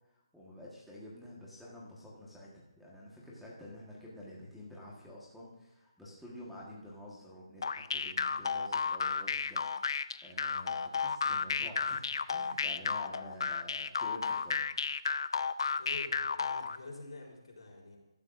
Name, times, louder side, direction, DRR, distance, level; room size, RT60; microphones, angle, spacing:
voice 1, 0.1-14.6, left 1 dB, ahead, -6 dB, 1.4 m, -49 dB
sound 1, 7.6-16.8, left 5 dB, 60° left, 0.4 m, -33 dB
voice 2, 15.8-18.0, left 2 dB, 80° left, -1 dB, 3.7 m, -47 dB
14.5 x 12.0 x 2.6 m, 0.99 s
hypercardioid pair, 165°, 3 cm